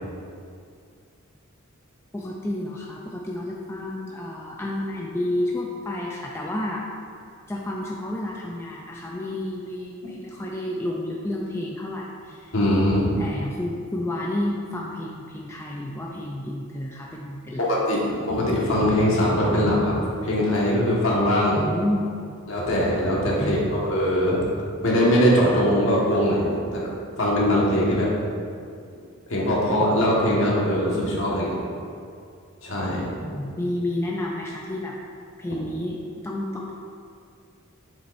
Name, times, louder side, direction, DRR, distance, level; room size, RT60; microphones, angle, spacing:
voice 1, 2.1-6.9 7.5-12.5 13.2-17.6 21.6-22.1 23.4-23.6 33.3-35.0 35.4-36.0 36.2-36.7, left 1 dB, 10° left, -3 dB, 0.4 m, -30 dB
voice 2, 12.5-13.1 17.6-21.6 22.5-24.4 24.8-26.9 27.2-28.1 29.3-31.6 32.6-33.1, equal, 60° left, -5 dB, 1.6 m, -21 dB
7.3 x 7.1 x 2.6 m, 2.3 s
head